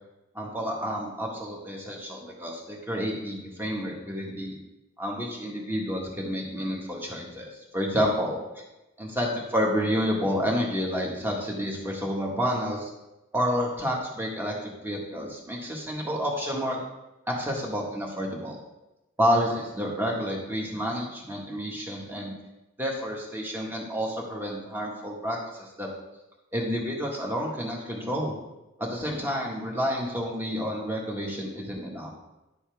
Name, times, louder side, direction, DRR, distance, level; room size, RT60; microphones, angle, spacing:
voice 1, 0.3-4.6 5.0-8.6 9.0-12.9 13.3-16.8 17.3-18.6 19.2-22.3 22.8-25.9 26.5-28.4 28.8-32.1, equal, 10° right, -2 dB, 1.6 m, -29 dB
10.5 x 7.1 x 3.5 m, 0.98 s
head